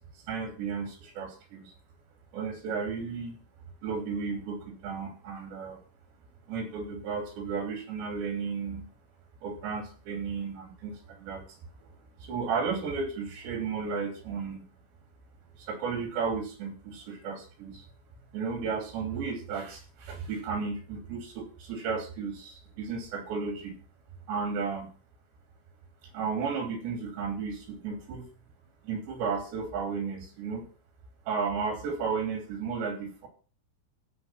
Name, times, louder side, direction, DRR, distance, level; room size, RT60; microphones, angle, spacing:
voice 1, 0.3-1.7 2.3-3.4 3.8-5.8 6.5-8.8 9.4-11.9 12.2-14.6 15.6-17.9 18.3-23.8 24.3-24.9 26.1-28.3 28.8-30.6 31.3-33.3, right 5 dB, 70° right, 5 dB, 5.1 m, -34 dB
15.5 x 6.0 x 5.6 m, 0.38 s
omnidirectional pair, 5.3 m